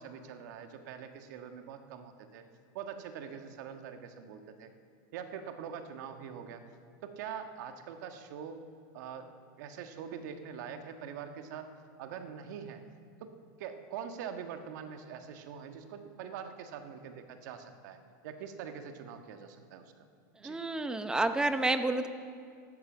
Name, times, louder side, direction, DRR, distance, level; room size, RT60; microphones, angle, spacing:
voice 1, 0.0-2.5 2.7-4.7 5.1-6.6 7.0-8.6 8.9-9.3 9.6-11.7 12.0-12.8 13.2-18.0 18.2-19.8 20.4-20.6, right 7 dB, 65° right, 6 dB, 1.5 m, -43 dB
voice 2, 20.4-22.1, right 2 dB, 5° right, 10 dB, 0.7 m, -29 dB
12.5 x 12.5 x 7.9 m, 2.3 s
supercardioid pair, 140°, 10 cm